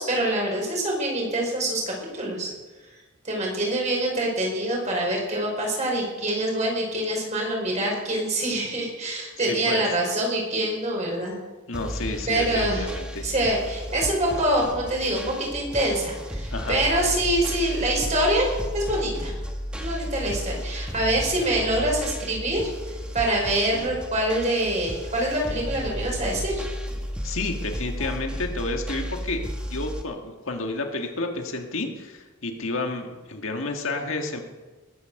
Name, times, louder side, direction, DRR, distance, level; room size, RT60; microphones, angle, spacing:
voice 1, 0.0-2.5 3.2-11.4 12.3-12.9 13.2-19.4 19.8-22.6 23.1-26.6, right 1 dB, 35° right, -1 dB, 5.2 m, -25 dB
voice 2, 9.5-9.8 11.7-13.3 16.5-16.8 27.2-29.4 29.7-34.4, left 2 dB, 70° left, 3 dB, 1.8 m, -30 dB
sound 1, 11.7-30.0, equal, 5° right, 1.3 m, -33 dB
20.5 x 9.6 x 6.5 m, 1.3 s
head